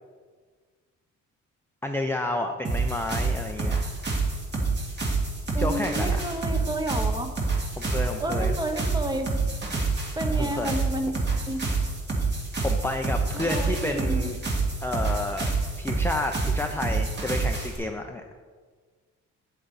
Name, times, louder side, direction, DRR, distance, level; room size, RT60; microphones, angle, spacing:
voice 1, 1.8-3.8 5.6-6.2 7.8-8.6 10.3-10.7 12.6-14.4 14.8-15.5 15.8-18.2, left 2 dB, 10° left, 3 dB, 0.5 m, -30 dB
sound 1, 2.6-17.8, right 3 dB, 35° right, 2.1 m, -27 dB
voice 2, 5.5-7.3 8.2-9.3 10.2-11.1 11.5-11.6 13.3-14.4, right 1 dB, 15° right, 6 dB, 1.0 m, -31 dB
8.6 x 7.7 x 4.1 m, 1.5 s
cardioid pair, 90°, 30 cm